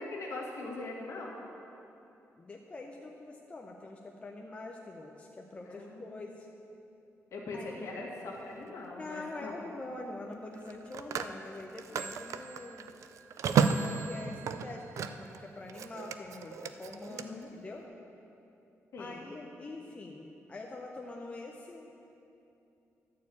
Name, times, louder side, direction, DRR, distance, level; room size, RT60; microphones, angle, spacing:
voice 1, 0.0-1.4 5.7-6.2 7.3-9.6 11.9-12.0 17.1-17.5 18.9-19.2, left 2 dB, 60° left, -2 dB, 1.8 m, -41 dB
voice 2, 2.4-6.5 7.5-7.9 9.0-13.0 13.4-17.8 19.0-21.9, left 2 dB, 20° left, 0 dB, 0.5 m, -44 dB
Telephone, 8.3-8.6 10.5-15.4 15.7-17.2, right 6 dB, 70° right, 0.4 m, -33 dB
11.5 x 4.6 x 8.3 m, 2.8 s
wide cardioid pair, 180°, 5 cm